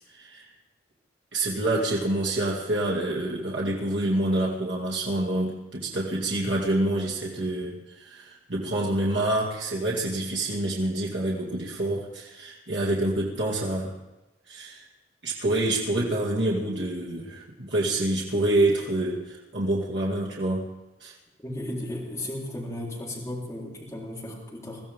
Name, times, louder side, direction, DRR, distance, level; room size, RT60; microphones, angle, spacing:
voice 1, 0.1-0.4 1.3-13.9 14.5-14.8 15.2-20.7 21.0-21.1, right 1 dB, 85° right, -5 dB, 2.4 m, -27 dB
voice 2, 21.4-24.8, left 1 dB, 15° left, -5 dB, 4.0 m, -35 dB
23.0 x 14.5 x 3.7 m, 1.1 s
head